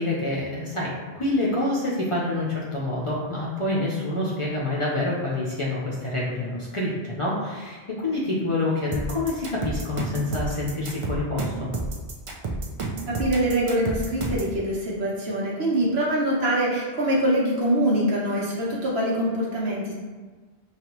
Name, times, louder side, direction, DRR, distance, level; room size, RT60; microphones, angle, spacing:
voice 1, 0.0-11.7, left 2 dB, 40° left, -5 dB, 0.5 m, -27 dB
sound 1, 8.9-14.6, right 3 dB, 45° right, 0.4 m, -30 dB
voice 2, 13.1-19.9, right 1 dB, 70° right, -5 dB, 1.2 m, -24 dB
5.1 x 2.4 x 3.0 m, 1.4 s
omnidirectional pair, 1.1 m